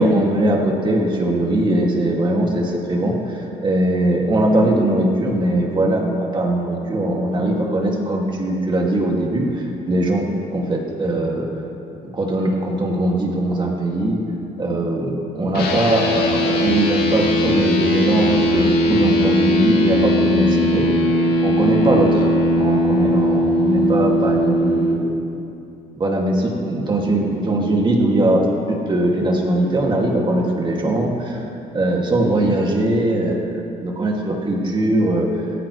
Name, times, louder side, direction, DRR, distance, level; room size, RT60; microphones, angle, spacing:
voice 1, 0.0-11.5 11.9-14.2 14.6-20.9 21.4-22.3 22.6-25.2 25.9-31.5 31.7-33.5 33.8-35.3, right 1 dB, 30° right, -1 dB, 2.3 m, -20 dB
sound 1, 15.5-24.9, left 1 dB, 65° left, 2.4 m, -19 dB
17.0 x 14.5 x 3.2 m, 2.7 s
cardioid pair, 110°, 17 cm